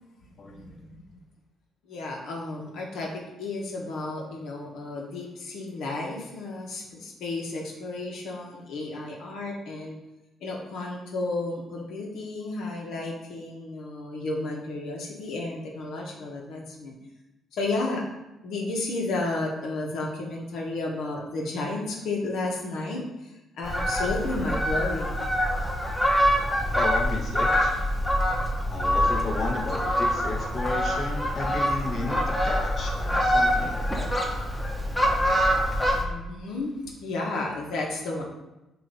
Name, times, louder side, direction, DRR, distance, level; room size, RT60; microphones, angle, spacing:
voice 1, 0.5-1.0 1.9-10.0 10.4-16.9 17.5-18.0 18.4-25.2 36.0-38.2, left 2 dB, 75° left, -1 dB, 1.2 m, -32 dB
Fowl, 23.6-36.0, equal, 15° left, 1.1 m, -25 dB
voice 2, 26.7-27.7 28.7-34.1, left 3 dB, 45° left, -2 dB, 1.2 m, -33 dB
7.5 x 2.6 x 5.3 m, 0.97 s
cardioid pair, 100°, 0 cm